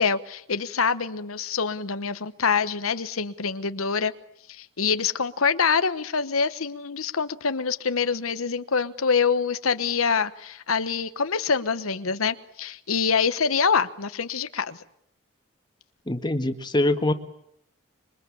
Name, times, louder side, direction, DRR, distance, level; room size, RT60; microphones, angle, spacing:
voice 1, 0.0-4.1 4.5-14.8, left 5 dB, 90° left, 12 dB, 1.1 m, -25 dB
voice 2, 16.1-17.1, left 1 dB, 20° left, 7 dB, 1.7 m, -23 dB
26.5 x 23.5 x 8.5 m, 0.74 s
head